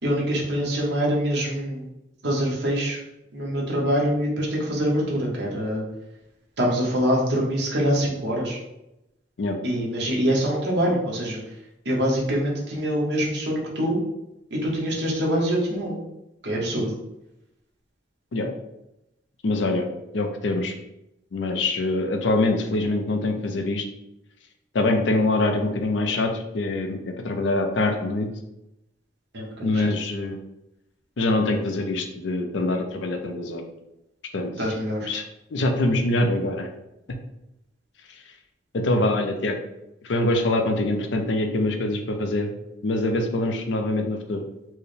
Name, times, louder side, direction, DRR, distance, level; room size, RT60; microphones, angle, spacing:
voice 1, 0.0-1.8 2.2-3.0 3.3-5.8 6.6-8.6 9.6-11.4 11.8-14.0 14.5-16.0 16.4-16.9 29.3-29.7 34.6-35.1, equal, 65° right, -2 dB, 1.1 m, -24 dB
voice 2, 19.4-19.9 20.1-20.7 21.3-23.9 24.7-28.3 29.6-30.4 31.2-33.7 34.3-34.7 35.0-35.2 35.5-36.7 38.7-39.6 40.0-42.5 42.8-44.4, left 2 dB, 75° left, 5 dB, 0.5 m, -24 dB
4.5 x 2.1 x 3.3 m, 0.90 s
head